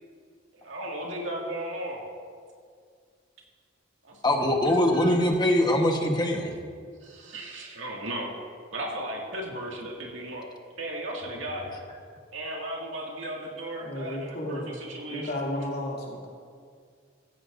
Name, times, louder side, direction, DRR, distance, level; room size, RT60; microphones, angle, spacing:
voice 1, 0.5-2.0 4.0-5.2 7.0-8.3 8.7-10.4 10.8-11.8 12.3-15.3, right 1 dB, 85° right, -2 dB, 2.1 m, -35 dB
voice 2, 4.2-6.5, left 1 dB, 25° left, 2 dB, 1.2 m, -23 dB
voice 3, 13.8-14.7 15.1-16.3, left 1 dB, 55° left, -4 dB, 2.7 m, -33 dB
15.5 x 14.0 x 2.6 m, 2.1 s
head